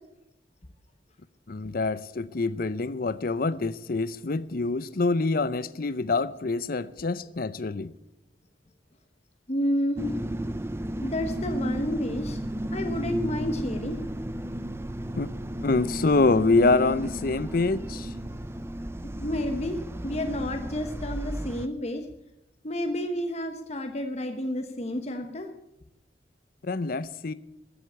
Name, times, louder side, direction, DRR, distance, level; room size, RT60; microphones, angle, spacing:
voice 1, 1.5-7.9 15.1-15.3 15.6-18.1 26.6-27.3, left 3 dB, 55° left, 0.6 m, -26 dB
voice 2, 9.5-10.2 11.0-12.4 12.7-14.0 19.0-22.1 22.6-25.5, left 1 dB, 40° left, 1.1 m, -30 dB
sound 1, 10.0-21.7, right 1 dB, 15° right, 0.5 m, -34 dB
14.5 x 8.0 x 8.4 m
head